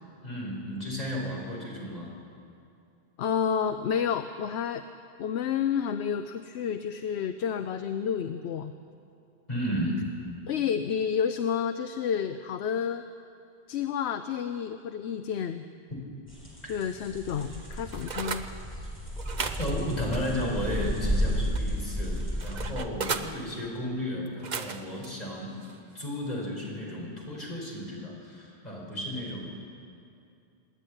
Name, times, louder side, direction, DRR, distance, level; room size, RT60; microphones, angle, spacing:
voice 1, 0.2-2.1 9.5-10.0 16.6-16.7 19.6-25.5 25.9-29.5, equal, 35° left, -3 dB, 5.2 m, -33 dB
voice 2, 3.2-4.9 5.2-8.7 10.5-13.0 13.7-15.6 16.7-18.5 23.0-23.1, left 7 dB, 70° left, 9 dB, 0.9 m, -30 dB
sound 1, 16.3-22.7, equal, 10° left, 5.9 m, -32 dB
sound 2, 17.4-18.5 19.2-21.1 21.6-23.3 24.3-25.1 25.6-25.8, right 5 dB, 45° right, 0.9 m, -37 dB
25.5 x 10.0 x 9.9 m, 2.5 s
omnidirectional pair, 1.2 m